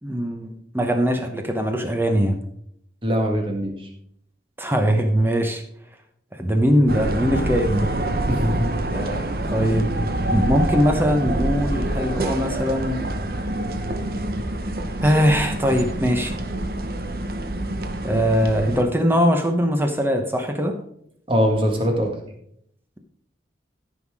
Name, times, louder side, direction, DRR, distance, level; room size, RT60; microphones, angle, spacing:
voice 1, 0.0-2.4 4.6-5.6 6.4-7.9 8.9-9.2 9.5-10.0 10.3-13.0 15.0-16.3 18.0-20.7, equal, 10° right, 4 dB, 0.9 m, -21 dB
voice 2, 3.0-3.9 8.3-8.7 21.3-22.1, equal, 30° right, 3 dB, 1.8 m, -22 dB
sound 1, 6.9-18.8, right 1 dB, 55° right, 1.0 m, -26 dB
13.5 x 5.8 x 4.8 m, 0.70 s
head